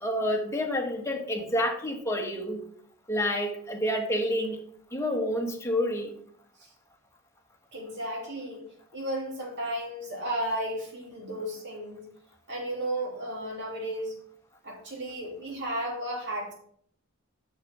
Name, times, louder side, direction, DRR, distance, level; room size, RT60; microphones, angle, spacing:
voice 1, 0.0-2.6 3.1-4.6 4.9-6.2, equal, 15° left, 1 dB, 1.2 m, -28 dB
voice 2, 7.7-8.7 8.9-12.1 12.5-14.1 14.6-16.5, right 1 dB, 50° right, -2 dB, 3.1 m, -34 dB
6.6 x 6.4 x 6.1 m, 0.65 s
head